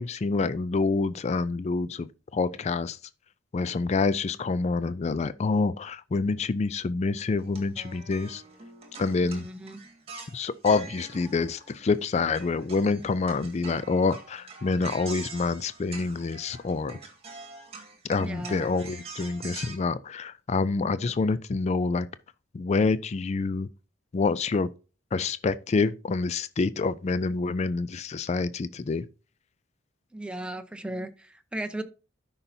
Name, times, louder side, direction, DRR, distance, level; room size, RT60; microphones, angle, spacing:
voice 1, 0.0-2.1 2.3-3.0 3.5-8.4 9.0-9.5 10.3-17.0 18.1-22.1 22.5-23.7 24.1-24.7 25.1-29.0, left 4 dB, 35° left, 0.3 m, -27 dB
sound 1, 7.4-12.1 12.3-19.8, right 4 dB, 30° right, 1.8 m, -44 dB
voice 2, 9.2-9.8 18.2-18.6 30.1-31.8, right 1 dB, 5° right, 0.7 m, -36 dB
13.0 x 5.6 x 2.7 m
head